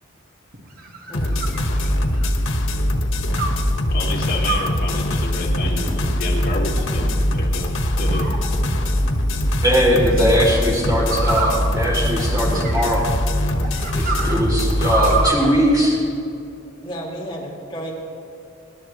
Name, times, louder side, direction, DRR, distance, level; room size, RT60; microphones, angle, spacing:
sound 1, 0.5-2.4 3.4-3.7 4.4-4.9 5.6-6.2 6.8-7.4 8.1-8.9 10.0-10.3 11.1-13.1 13.6-15.5, right 3 dB, 50° right, 1.5 m, -28 dB
sound 2, 1.1-15.3, left 1 dB, 85° left, 1.5 m, -22 dB
voice 1, 3.9-7.7 8.0-8.3, left 2 dB, 50° left, -3 dB, 2.5 m, -29 dB
voice 2, 9.6-13.0 13.9-16.0, equal, 20° right, -3 dB, 3.1 m, -20 dB
voice 3, 16.8-17.9, equal, 25° left, -4 dB, 2.6 m, -32 dB
26.0 x 11.5 x 3.2 m, 2.7 s
head